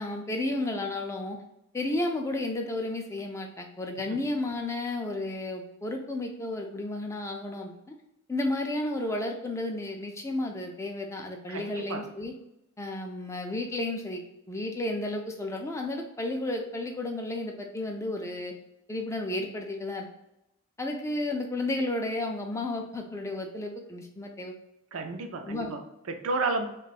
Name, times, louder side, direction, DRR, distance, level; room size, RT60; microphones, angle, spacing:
voice 1, 0.0-1.4 1.7-7.9 8.3-12.3 12.8-14.2 14.5-18.5 18.9-20.1 20.8-24.5 25.4-25.7, left 2 dB, 15° left, 2 dB, 0.3 m, -32 dB
voice 2, 11.5-12.0 24.9-26.7, right 3 dB, 75° right, 6 dB, 0.4 m, -32 dB
3.0 x 2.2 x 4.1 m, 0.86 s
head